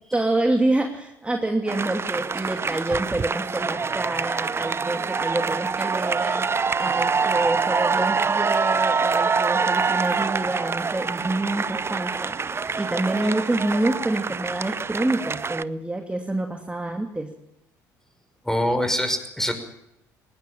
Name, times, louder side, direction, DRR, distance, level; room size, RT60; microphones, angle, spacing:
voice 1, 0.1-6.4 6.8-17.3, right 2 dB, 15° right, 2 dB, 2.8 m, -27 dB
sound 1, 1.7-15.6, right 5 dB, 30° right, 0.8 m, -25 dB
voice 2, 18.4-19.5, equal, 5° left, 7 dB, 5.9 m, -24 dB
20.0 x 19.5 x 7.5 m, 0.82 s
hypercardioid pair, 60°, 9 cm